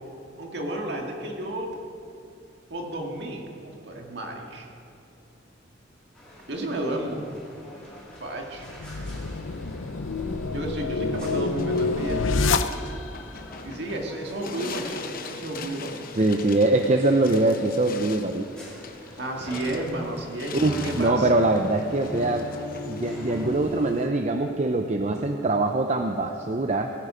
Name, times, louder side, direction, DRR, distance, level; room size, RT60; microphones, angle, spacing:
voice 1, 0.4-1.7 2.7-4.7 6.5-7.3 8.2-8.7 10.5-12.2 13.6-16.0 19.2-21.3, right 1 dB, 55° right, 1 dB, 2.0 m, -32 dB
sound 1, 6.1-23.9, left 1 dB, 5° left, 3.1 m, -41 dB
sound 2, 8.6-13.2, left 3 dB, 80° left, 0.6 m, -27 dB
sound 3, 11.1-24.1, left 5 dB, 45° left, 0.8 m, -42 dB
voice 2, 16.2-18.5 20.5-22.5 22.9-26.9, right 2 dB, 35° right, 4 dB, 0.6 m, -23 dB
18.0 x 10.0 x 5.0 m, 2.7 s
head